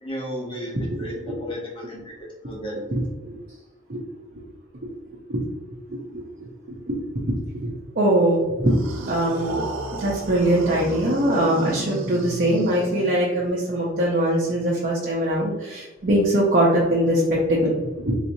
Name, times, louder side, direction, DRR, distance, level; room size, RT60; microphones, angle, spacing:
voice 1, 0.0-2.8, equal, 25° left, -3 dB, 1.0 m, -34 dB
voice 2, 5.9-6.2 6.7-7.0 7.6-8.8 9.0-9.6 10.0-17.2 17.5-18.1, right 1 dB, 45° right, -5 dB, 0.7 m, -22 dB
sound 1, 8.7-13.5, right 2 dB, 90° right, 0.6 m, -33 dB
3.9 x 3.0 x 2.6 m, 1.1 s
head